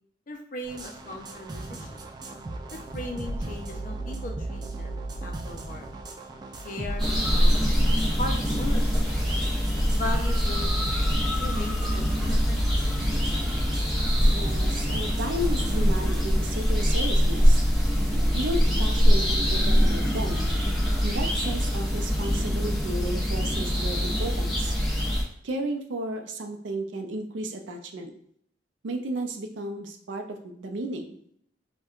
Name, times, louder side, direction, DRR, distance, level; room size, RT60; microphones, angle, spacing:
voice 1, 0.3-2.0 2.7-5.9 6.6-7.8 8.2-8.9 9.9-10.7 11.4-12.6, left 1 dB, 45° left, 3 dB, 0.5 m, -37 dB
sound 1, 0.6-16.2, right 2 dB, 20° right, 0.3 m, -36 dB
sound 2, 7.0-25.2, equal, ahead, 0.8 m, -23 dB
voice 2, 14.2-17.6 18.3-20.5 21.0-24.7 25.4-28.1 28.8-31.2, right 1 dB, 85° right, 4 dB, 0.5 m, -33 dB
4.3 x 2.2 x 2.4 m, 0.67 s
head